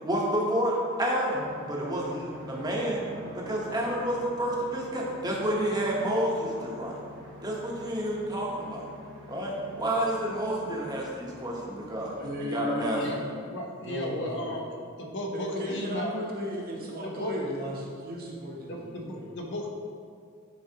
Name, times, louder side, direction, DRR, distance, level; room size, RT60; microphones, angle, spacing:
voice 1, 0.0-3.0 3.3-7.0 7.4-8.8 9.3-13.0, right 1 dB, 20° right, -3 dB, 1.0 m, -29 dB
sound 1, 1.3-12.4, equal, 70° right, 1.2 m, -46 dB
voice 2, 12.2-13.2 13.5-14.6 15.3-19.3, equal, 45° right, -2 dB, 1.1 m, -35 dB
voice 3, 12.9-14.7 15.0-16.1 17.0-17.4 18.7-19.7, left 1 dB, 60° left, 0 dB, 0.9 m, -35 dB
10.5 x 4.1 x 2.9 m, 2.2 s
head